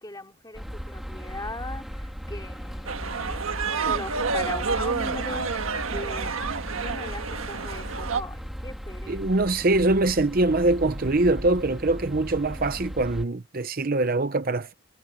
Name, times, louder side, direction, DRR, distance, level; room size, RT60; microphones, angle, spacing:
voice 1, 0.0-6.4 6.7-9.2, left 2 dB, 20° left, 3.0 m, -39 dB
sound 1, 0.5-13.2, equal, ahead, 2.1 m, -37 dB
sound 2, 2.9-8.2, right 5 dB, 75° right, 1.6 m, -29 dB
voice 2, 9.1-14.7, right 2 dB, 40° right, 0.7 m, -23 dB
head